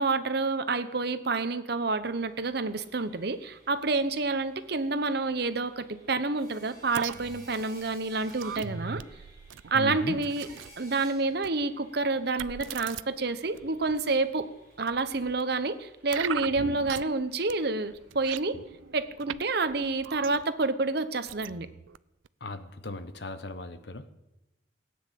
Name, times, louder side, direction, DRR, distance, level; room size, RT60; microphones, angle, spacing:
voice 1, 0.0-9.0 9.7-10.5 10.8-14.5 14.8-18.6 18.9-21.7, right 3 dB, 55° right, 11 dB, 0.9 m, -28 dB
Sawing, 2.0-19.8, right 1 dB, 15° right, 7.9 m, -57 dB
sound 1, 6.9-10.8 11.4-11.6 12.4-13.0 13.5-14.1 14.9-15.4 16.1-17.2 17.5-17.6 17.9-19.4 19.7-20.7 21.3-22.0 22.2-22.3, right 7 dB, 90° right, 0.5 m, -39 dB
voice 2, 9.7-10.2 22.4-24.1, left 2 dB, 60° left, 10 dB, 1.1 m, -37 dB
17.5 x 9.6 x 7.6 m, 0.95 s
head